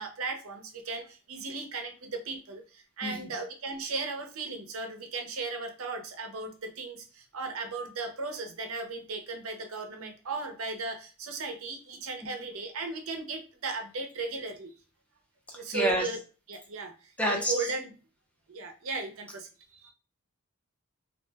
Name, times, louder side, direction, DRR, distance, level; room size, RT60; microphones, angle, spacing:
voice 1, 0.0-14.7 15.5-16.2 16.5-16.9 17.3-17.9 18.5-19.5 19.8-19.9, right 3 dB, 75° right, 5 dB, 0.6 m, -36 dB
voice 2, 15.5-16.1 17.2-17.7, equal, 5° left, 0 dB, 0.5 m, -29 dB
2.4 x 2.1 x 3.3 m, 0.35 s
head